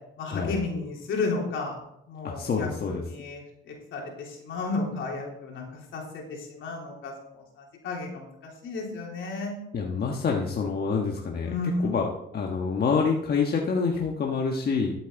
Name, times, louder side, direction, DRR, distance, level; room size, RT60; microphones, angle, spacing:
voice 1, 0.2-1.8 2.1-5.6 5.9-7.4 7.8-9.5 11.4-12.0, left 3 dB, 75° left, -1 dB, 3.6 m, -33 dB
voice 2, 2.2-3.0 9.7-11.5 11.8-12.1 12.3-14.9, left 5 dB, 50° left, 0 dB, 1.4 m, -27 dB
13.0 x 8.0 x 4.0 m, 0.79 s
cardioid pair, 90°, 20 cm